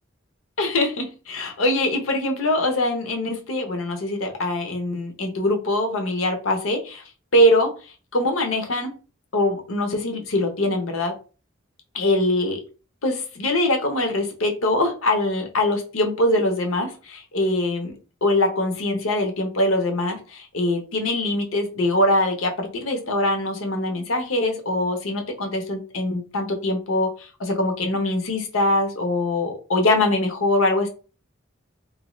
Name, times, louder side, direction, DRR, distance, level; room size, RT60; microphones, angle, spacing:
voice 1, 0.6-7.0 7.3-7.7 8.1-8.9 9.3-11.1 11.9-12.6 13.0-18.0 18.2-30.9, left 1 dB, 80° left, 0.8 m, -23 dB
2.7 x 2.2 x 3.0 m
head